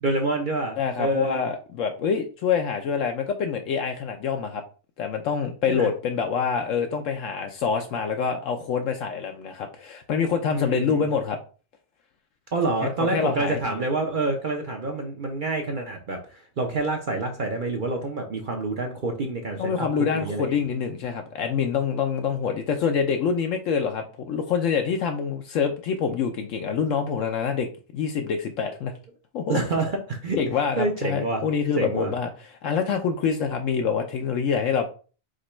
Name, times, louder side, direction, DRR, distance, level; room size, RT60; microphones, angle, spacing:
voice 1, 0.0-1.5 5.7-5.9 10.5-11.1 12.5-19.9 20.1-20.5 29.5-30.4 30.8-31.4 31.8-32.1, right 2 dB, 50° right, 3 dB, 0.7 m, -27 dB
voice 2, 0.8-4.6 5.0-11.4 12.8-13.8 19.6-28.9 29.3-29.6 30.4-34.9, left 6 dB, 75° left, 5 dB, 0.9 m, -26 dB
5.0 x 2.2 x 4.2 m, 0.37 s
omnidirectional pair, 1.4 m